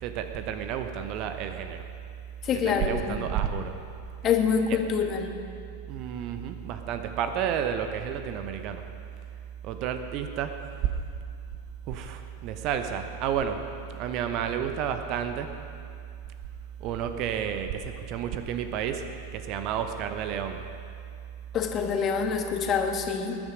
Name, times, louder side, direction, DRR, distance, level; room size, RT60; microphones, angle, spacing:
voice 1, 0.0-1.9 2.5-3.8 5.9-8.8 9.6-10.6 11.9-15.6 16.8-20.7, right 8 dB, 40° right, 8 dB, 0.9 m, -31 dB
voice 2, 2.4-3.3 4.2-5.3 21.5-23.4, left 6 dB, 30° left, 4 dB, 1.5 m, -26 dB
20.0 x 9.8 x 5.2 m, 2.4 s
figure-of-eight pair, 90°, 0 cm